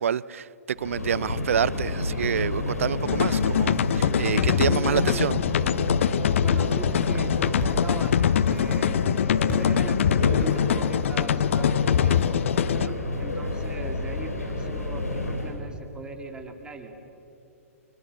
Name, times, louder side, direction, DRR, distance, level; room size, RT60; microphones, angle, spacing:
voice 1, 0.0-5.4, right 8 dB, 65° right, 21 dB, 0.6 m, -27 dB
Subway metro underground, 0.8-15.6, left 2 dB, 80° left, 4.0 m, -29 dB
sound 1, 3.1-12.9, left 9 dB, 55° left, 0.7 m, -24 dB
voice 2, 4.2-5.2 6.4-12.4 12.7-17.0, right 3 dB, 10° right, 4 dB, 2.7 m, -40 dB
Hitting cloth, 7.6-8.1 8.5-9.1 9.5-9.8 10.4-10.8, left 2 dB, 20° left, 6.3 m, -34 dB
30.0 x 25.0 x 7.3 m, 2.9 s
figure-of-eight pair, 115°, 8 cm